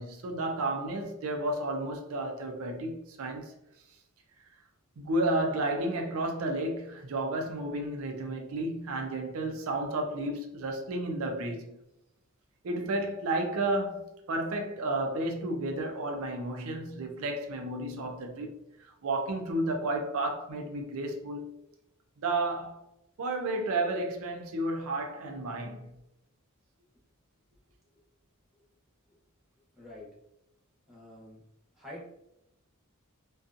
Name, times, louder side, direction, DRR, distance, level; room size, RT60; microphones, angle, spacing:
voice 1, 0.0-3.5 5.0-11.7 12.6-21.5 22.2-22.8 23.2-25.9, right 2 dB, 65° right, 0.5 m, -32 dB
voice 2, 29.8-30.2 30.9-31.4 31.8-32.1, left 1 dB, ahead, 0.8 m, -46 dB
2.6 x 2.3 x 2.5 m
head